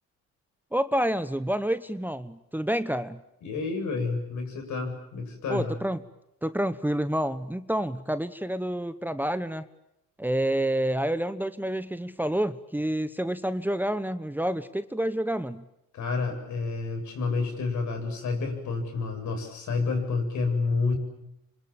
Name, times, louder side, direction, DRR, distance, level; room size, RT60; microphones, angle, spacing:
voice 1, 0.7-3.2 5.5-6.0 6.4-9.6 10.2-15.6, right 1 dB, 5° right, 12 dB, 1.1 m, -28 dB
voice 2, 3.4-5.8 15.9-21.0, left 4 dB, 70° left, 4 dB, 7.5 m, -29 dB
26.5 x 25.5 x 8.9 m, 0.84 s
cardioid pair, 90°, 30 cm